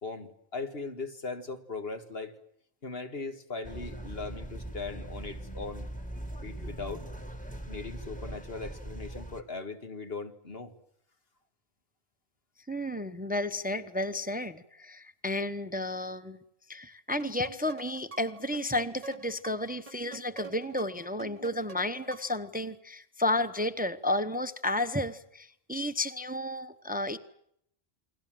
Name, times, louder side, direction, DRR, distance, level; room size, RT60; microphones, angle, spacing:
voice 1, 0.0-2.3 2.8-5.9 6.4-7.0 7.7-10.7, left 3 dB, 65° left, 2.1 m, -39 dB
sound 1, 3.6-9.4, right 1 dB, 5° left, 1.9 m, -41 dB
voice 2, 12.7-16.4 16.7-27.2, left 1 dB, 10° right, 0.9 m, -32 dB
sound 2, 17.2-22.5, right 5 dB, 35° right, 1.2 m, -47 dB
29.5 x 22.0 x 7.7 m
omnidirectional pair, 1.1 m